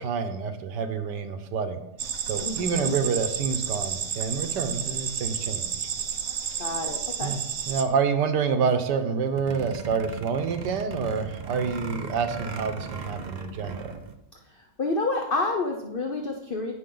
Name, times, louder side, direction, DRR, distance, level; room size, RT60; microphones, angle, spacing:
voice 1, 0.0-1.8 2.3-5.6 7.2-13.9, right 5 dB, 90° right, 8 dB, 1.5 m, -28 dB
sound 1, 2.0-7.8, right 8 dB, 60° right, 1.1 m, -31 dB
voice 2, 2.4-2.9 6.6-7.3 14.5-16.7, left 3 dB, 45° left, 3 dB, 0.8 m, -29 dB
sound 2, 9.3-14.1, right 3 dB, 45° right, 0.6 m, -37 dB
17.5 x 6.3 x 3.9 m, 0.87 s
omnidirectional pair, 1.8 m